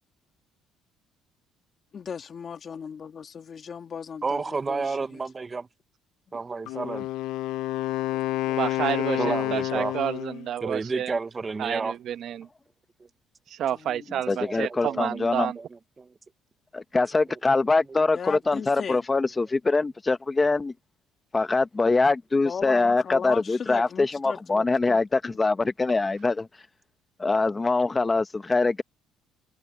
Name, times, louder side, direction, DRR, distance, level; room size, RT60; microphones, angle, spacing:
voice 1, 1.9-5.2 13.7-14.1 18.1-19.0 22.4-25.4, left 6 dB, 40° left, 2.2 m, -37 dB
voice 2, 4.2-5.7 6.3-7.1 8.1-8.6 8.8-9.9 10.6-12.0 13.0-13.1 14.4-15.2 15.6-16.1 17.3-17.6, right 4 dB, 25° right, 0.9 m, -32 dB
Wind instrument woodwind instrument, 6.7-10.5, left 16 dB, 80° left, 0.7 m, -29 dB
voice 3, 8.5-11.1 11.6-12.5 13.5-15.6, right 10 dB, 60° right, 1.0 m, -30 dB
voice 4, 14.3-15.5 16.7-20.7 21.3-26.5 27.2-28.8, left 3 dB, 20° left, 0.9 m, -23 dB
cardioid pair, 115°, 0 cm